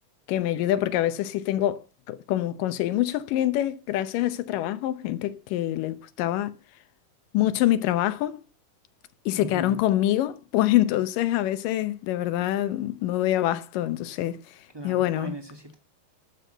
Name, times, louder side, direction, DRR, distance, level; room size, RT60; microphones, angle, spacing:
voice 1, 0.3-6.5 7.3-8.4 9.3-15.4, left 13 dB, 90° left, 2.5 m, -25 dB
voice 2, 9.3-9.8 14.7-15.7, right 1 dB, 35° right, 0.4 m, -38 dB
12.5 x 6.1 x 6.5 m
omnidirectional pair, 3.8 m